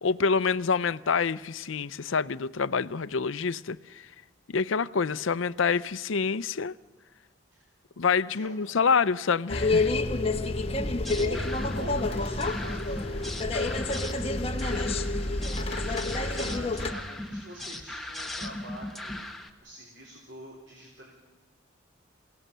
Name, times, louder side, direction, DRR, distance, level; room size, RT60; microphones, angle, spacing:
voice 1, 0.0-4.1 4.5-6.7 8.0-9.9, left 5 dB, 75° left, 0.6 m, -27 dB
sound 1, 9.5-16.9, left 2 dB, 30° left, 1.1 m, -28 dB
sound 2, 10.8-19.5, left 1 dB, ahead, 1.2 m, -38 dB
voice 2, 11.2-11.5 11.8-14.5 15.7-19.3 19.6-21.1, right 1 dB, 60° right, 3.7 m, -46 dB
28.0 x 17.5 x 6.8 m
head